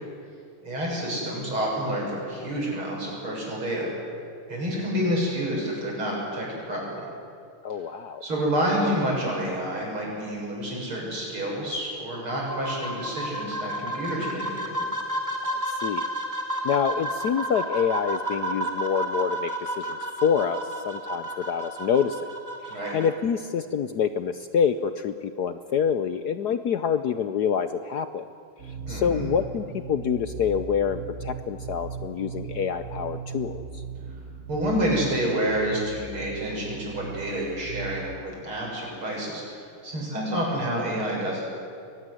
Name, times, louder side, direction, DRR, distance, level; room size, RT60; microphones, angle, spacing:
voice 1, 0.6-3.9 4.5-7.0 8.2-14.8 22.7-23.0 28.9-29.3 34.5-41.5, equal, 75° right, -3 dB, 8.1 m, -28 dB
voice 2, 7.6-8.2 15.4-16.0 16.6-22.2 22.6-28.2 28.7-33.8, left 7 dB, 65° left, 11 dB, 1.1 m, -27 dB
sound 1, 12.1-23.1, right 1 dB, 10° right, 2.9 m, -31 dB
sound 2, 28.6-38.2, right 5 dB, 40° right, 1.7 m, -38 dB
23.5 x 18.5 x 9.9 m, 2.4 s
omnidirectional pair, 2.4 m